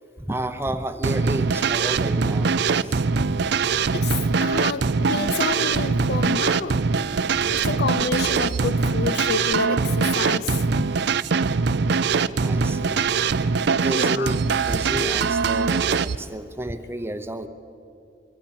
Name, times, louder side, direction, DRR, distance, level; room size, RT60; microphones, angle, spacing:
voice 1, 0.2-3.4 7.5-7.6 12.4-13.0 13.8-17.5, right 1 dB, 15° right, 0.8 m, -31 dB
sound 1, 1.0-16.2, right 5 dB, 60° right, 0.5 m, -22 dB
voice 2, 3.9-6.8 7.1-7.2 7.5-10.7 13.9-14.4, left 5 dB, 60° left, 0.5 m, -29 dB
24.5 x 24.0 x 6.0 m
head